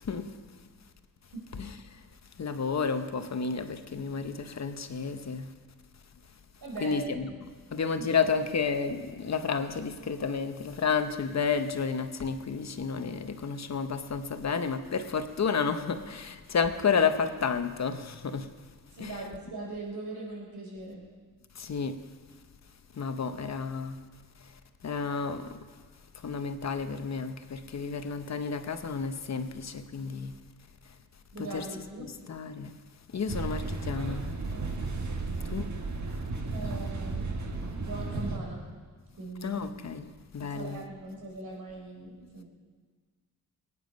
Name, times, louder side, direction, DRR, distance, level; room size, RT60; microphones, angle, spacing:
voice 1, 2.4-5.5 6.8-7.4 7.7-18.5 19.0-19.2 21.6-22.0 23.0-23.9 24.8-25.5 26.2-30.3 31.4-32.7 33.1-34.2 35.5-35.6 39.4-40.1 40.3-40.8, left 5 dB, 50° left, 0.9 m, -31 dB
voice 2, 6.6-7.1 19.0-21.1 31.3-32.1 34.5-34.7 35.3-35.4 36.5-37.3 37.7-38.6 39.2-39.6 40.4-42.4, right 2 dB, 80° right, 4.0 m, -40 dB
sound 1, 33.3-38.4, right 3 dB, 55° right, 1.6 m, -34 dB
22.5 x 9.6 x 5.2 m
wide cardioid pair, 135°, 35 cm